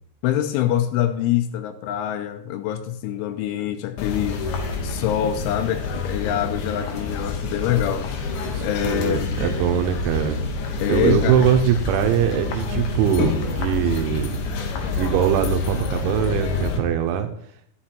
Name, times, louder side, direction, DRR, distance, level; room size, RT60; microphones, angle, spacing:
voice 1, 0.2-4.4 4.8-8.1 8.4-9.4 10.8-11.4, left 11 dB, 85° left, 8 dB, 3.0 m, -25 dB
sound 1, 4.0-16.8, left 4 dB, 70° left, 2.2 m, -27 dB
voice 2, 8.5-10.4 10.9-14.4 14.9-17.3, right 9 dB, 80° right, 6 dB, 3.0 m, -22 dB
11.5 x 6.9 x 4.3 m, 0.71 s
omnidirectional pair, 5.5 m